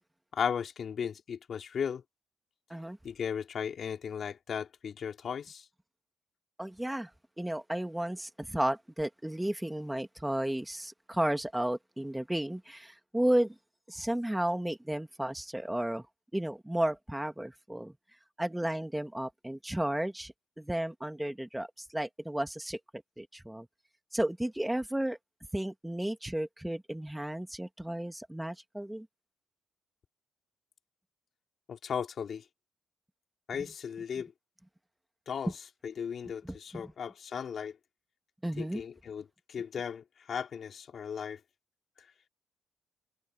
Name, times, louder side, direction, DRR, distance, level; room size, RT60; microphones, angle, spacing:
voice 1, 0.3-2.0 3.0-5.7 31.7-32.4 33.5-34.3 35.3-35.5 35.8-37.8 38.6-41.4 42.0-42.1, left 7 dB, 55° left, 3.5 m, -36 dB
voice 2, 6.6-7.1 7.4-13.6 13.9-16.1 16.3-17.9 18.4-23.7 24.1-25.2 25.5-29.1 36.4-36.9 38.4-38.8, right 1 dB, 5° right, 1.8 m, -33 dB
cardioid pair, 90°, 0 cm